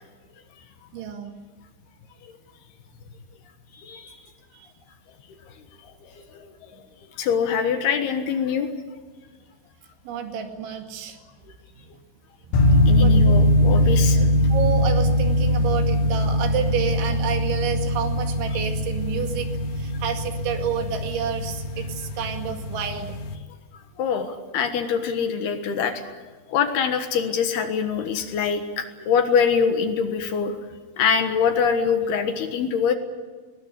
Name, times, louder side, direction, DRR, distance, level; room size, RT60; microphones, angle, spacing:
voice 1, 0.9-1.3 4.5-4.7 6.7-6.8 10.0-11.2 12.4-13.4 13.8-14.1 14.5-23.1, right 7 dB, 70° right, 4 dB, 4.5 m, -30 dB
voice 2, 3.7-4.2 5.8-6.5 7.2-8.7 12.9-14.3 24.0-26.0 26.5-30.6 31.0-33.0, left 6 dB, 65° left, 7 dB, 3.0 m, -24 dB
sound 1, 12.5-23.3, left 1 dB, 90° left, 4.5 m, -21 dB
21.0 x 20.0 x 9.9 m, 1.4 s
omnidirectional pair, 5.6 m